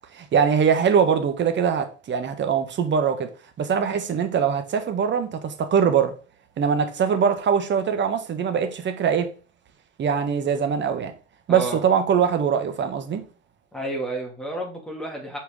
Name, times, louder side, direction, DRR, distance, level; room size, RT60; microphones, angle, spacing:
voice 1, 0.1-3.3 3.6-6.1 6.6-9.3 10.0-11.1 11.5-13.2, right 7 dB, 30° right, 1.2 m, -22 dB
voice 2, 11.5-11.8 13.7-15.4, right 2 dB, ahead, 2.5 m, -31 dB
6.0 x 4.6 x 3.6 m
hypercardioid pair, 85°, 40 cm